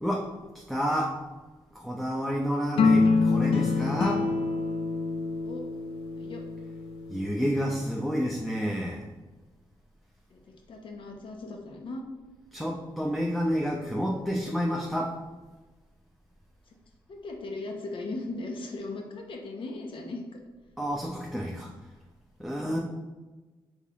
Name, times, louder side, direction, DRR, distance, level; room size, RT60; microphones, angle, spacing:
voice 1, 0.5-1.1 1.7-4.3 7.1-9.0 12.5-15.1 20.8-21.7 22.4-22.8, equal, ahead, -2 dB, 0.7 m, -29 dB
sound 1, 2.8-7.2, left 4 dB, 80° left, 0.4 m, -26 dB
voice 2, 10.7-12.0 17.1-20.4, left 2 dB, 65° left, 2 dB, 0.9 m, -38 dB
4.0 x 3.6 x 3.7 m, 1.2 s
cardioid pair, 65°, 9 cm